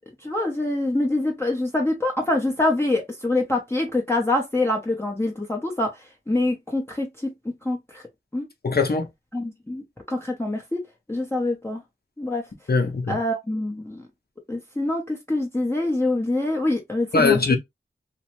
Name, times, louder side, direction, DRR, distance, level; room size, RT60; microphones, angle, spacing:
voice 1, 0.2-7.3 7.6-8.0 8.3-8.5 9.3-10.8 11.1-11.8 12.2-12.4 13.1-14.1 14.5-17.6, left 2 dB, 10° left, 0.7 m, -25 dB
voice 2, 8.6-9.1 12.7-13.2 17.1-17.6, left 4 dB, 50° left, 0.7 m, -21 dB
3.0 x 2.1 x 2.9 m
wide cardioid pair, 45°, 21 cm